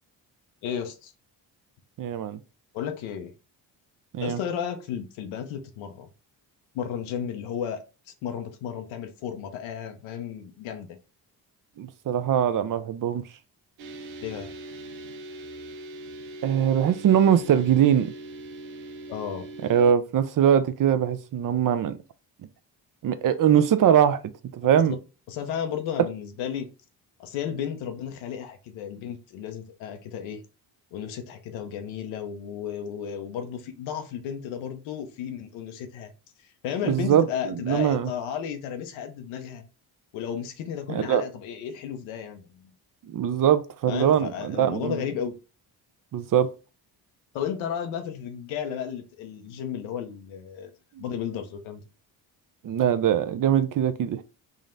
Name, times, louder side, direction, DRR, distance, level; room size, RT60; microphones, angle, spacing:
voice 1, 0.6-1.1 2.7-3.3 4.2-6.1 6.7-7.8 8.2-11.0 14.2-14.5 19.1-19.5 24.8-25.0 25.3-26.7 27.2-30.4 30.9-36.1 36.6-39.7 40.1-42.7 43.9-45.3 47.3-50.7 51.0-51.8, left 8 dB, 85° left, 0.8 m, -33 dB
voice 2, 2.0-2.4 4.1-4.4 11.8-13.2 16.4-18.1 19.7-22.0 23.0-24.2 24.5-25.0 36.8-38.1 40.9-41.2 43.1-45.0 46.1-46.5 51.0-51.1 52.6-54.2, right 9 dB, 45° right, 0.5 m, -22 dB
sound 1, 13.8-19.9, right 2 dB, 80° right, 0.7 m, -41 dB
3.8 x 2.1 x 3.8 m
supercardioid pair, 60°, 46 cm